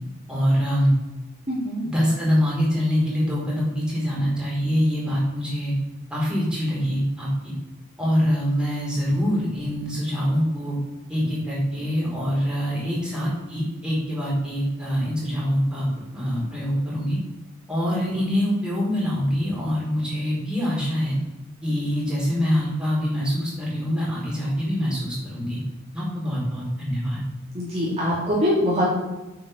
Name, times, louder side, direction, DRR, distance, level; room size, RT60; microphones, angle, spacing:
voice 1, 0.3-0.9 1.8-5.7 6.1-7.5 8.0-10.8 11.1-17.2 17.7-21.2 21.6-25.6 25.9-27.2, equal, 5° right, -6 dB, 4.8 m, -24 dB
voice 2, 1.5-1.9 27.5-28.9, equal, 30° right, -6 dB, 2.9 m, -23 dB
9.1 x 7.8 x 6.8 m, 1.0 s
head